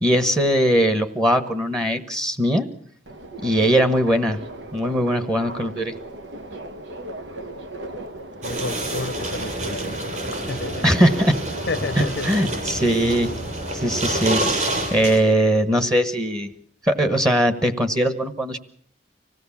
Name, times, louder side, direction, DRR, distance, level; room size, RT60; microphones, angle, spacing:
voice 1, 0.0-2.7 3.3-4.4 4.7-5.9 10.8-11.4 12.0-13.3 13.7-16.5 16.8-18.6, equal, 20° right, 1.2 m, -20 dB
Subway metro underground, 3.1-14.4, right 1 dB, 85° right, 1.3 m, -36 dB
voice 2, 8.4-10.8 11.7-12.3, left 3 dB, 80° left, 0.9 m, -31 dB
sound 1, 8.4-15.2, right 1 dB, 45° right, 7.1 m, -28 dB
25.5 x 17.5 x 7.2 m
head